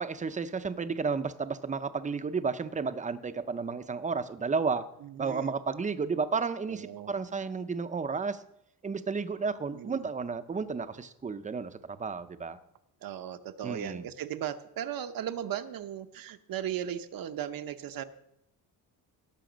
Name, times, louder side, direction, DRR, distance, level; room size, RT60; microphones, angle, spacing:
voice 1, 0.0-4.9 5.2-8.4 8.8-12.6 13.6-14.1, right 5 dB, 20° right, 11 dB, 0.6 m, -32 dB
voice 2, 5.0-5.5 6.7-7.1 9.7-10.1 13.0-18.0, right 10 dB, 65° right, 10 dB, 0.8 m, -37 dB
17.5 x 6.9 x 5.1 m, 0.80 s
cardioid pair, 155°, 37 cm